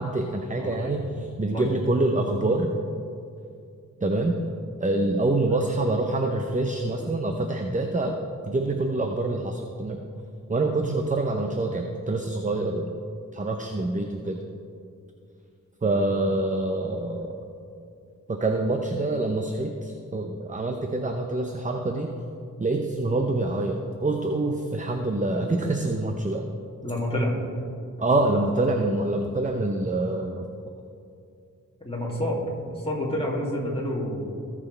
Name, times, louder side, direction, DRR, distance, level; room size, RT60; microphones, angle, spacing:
voice 1, 0.0-2.7 4.0-4.4 4.8-8.2 8.5-10.0 10.5-12.9 13.3-14.4 15.8-17.4 18.3-22.1 22.6-26.5 28.0-30.5, right 2 dB, 25° right, 4 dB, 0.8 m, -26 dB
voice 2, 0.6-1.0 1.5-1.7 26.8-27.3 31.8-32.4 32.7-34.4, left 1 dB, 15° left, -4 dB, 2.7 m, -28 dB
18.5 x 6.2 x 3.4 m, 2.5 s
cardioid pair, 60°, 32 cm